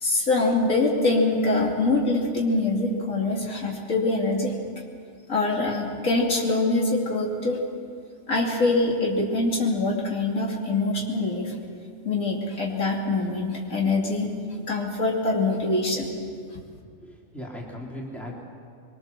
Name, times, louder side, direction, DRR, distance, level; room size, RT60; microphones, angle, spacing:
voice 1, 0.0-4.5 5.3-7.6 8.3-11.5 12.0-14.3 14.7-16.1, left 2 dB, 70° left, -2 dB, 3.3 m, -24 dB
voice 2, 17.0-18.4, left 1 dB, ahead, -3 dB, 3.4 m, -38 dB
23.0 x 23.0 x 6.8 m, 2.3 s
omnidirectional pair, 1.4 m